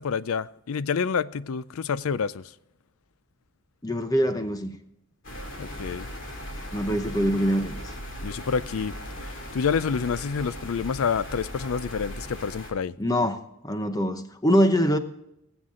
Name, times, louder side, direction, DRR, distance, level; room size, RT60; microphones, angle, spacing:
voice 1, 0.0-2.4 5.6-6.1 8.2-12.9, left 6 dB, 80° left, 0.4 m, -28 dB
voice 2, 3.8-4.8 6.7-7.8 13.0-15.0, equal, 15° left, 0.8 m, -24 dB
sound 1, 5.2-12.7, equal, 60° left, 2.7 m, -38 dB
19.0 x 8.0 x 3.7 m
head